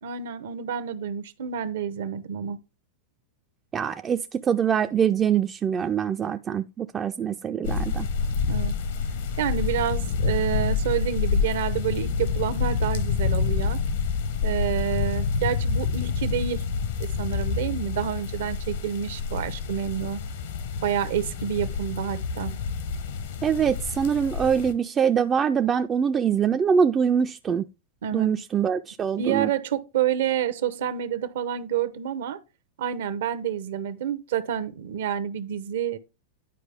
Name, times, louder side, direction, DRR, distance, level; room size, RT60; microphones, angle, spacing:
voice 1, 0.0-2.6 8.5-8.8 9.4-13.8 14.4-16.6 17.0-20.2 20.8-22.6 28.0-28.3 29.2-32.4 32.8-36.0, right 9 dB, 70° right, 0.8 m, -28 dB
voice 2, 3.7-8.1 23.4-27.7 28.1-29.5, right 7 dB, 25° right, 0.4 m, -24 dB
sound 1, 7.6-24.7, left 5 dB, 70° left, 1.2 m, -28 dB
9.9 x 4.6 x 3.4 m
hypercardioid pair, 110°, 0 cm